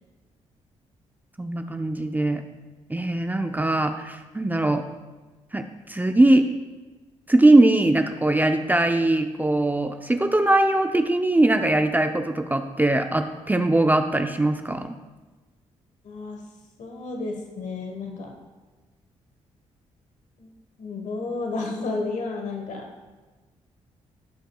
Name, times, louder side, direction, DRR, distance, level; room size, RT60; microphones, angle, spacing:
voice 1, 1.4-2.4 2.9-4.8 5.5-6.4 7.3-14.9, right 2 dB, 15° right, 6 dB, 0.6 m, -21 dB
voice 2, 16.0-16.4 16.8-18.3 20.4-20.5 20.8-22.9, left 3 dB, 65° left, 2 dB, 1.3 m, -31 dB
15.0 x 5.3 x 2.3 m, 1.2 s
supercardioid pair, 60°, 13 cm